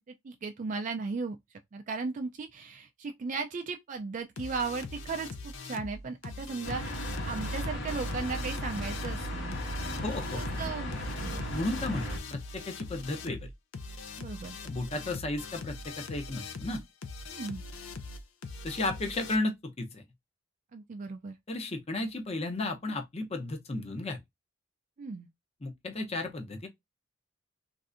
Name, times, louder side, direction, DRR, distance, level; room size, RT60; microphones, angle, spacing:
voice 1, 0.2-1.4 1.7-9.5 10.3-10.9 11.2-11.4 14.2-14.6 17.3-17.6 20.7-21.4 25.0-25.3, right 4 dB, 40° right, 0.3 m, -36 dB
sound 1, 4.4-19.4, left 4 dB, 90° left, 0.5 m, -42 dB
sound 2, 6.6-12.2, equal, 65° left, 1.1 m, -35 dB
voice 2, 10.0-10.4 11.5-13.5 14.6-16.8 18.6-20.0 21.5-24.2 25.6-26.7, left 2 dB, 30° left, 0.6 m, -34 dB
3.2 x 2.6 x 2.4 m
head